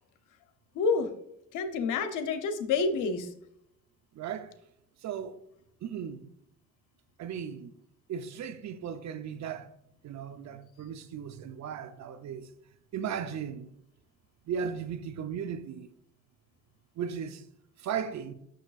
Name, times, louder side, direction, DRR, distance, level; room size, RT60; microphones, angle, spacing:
voice 1, 0.7-1.1 1.5-3.3, left 4 dB, 85° left, 0.8 m, -28 dB
voice 2, 4.1-4.5 5.0-5.4 5.8-6.2 7.2-7.7 8.1-9.7 10.0-12.5 12.9-13.7 14.5-15.9 17.0-17.4 17.8-18.3, right 7 dB, 65° right, 0.7 m, -36 dB
6.5 x 6.2 x 2.4 m
cardioid pair, 90°, 30 cm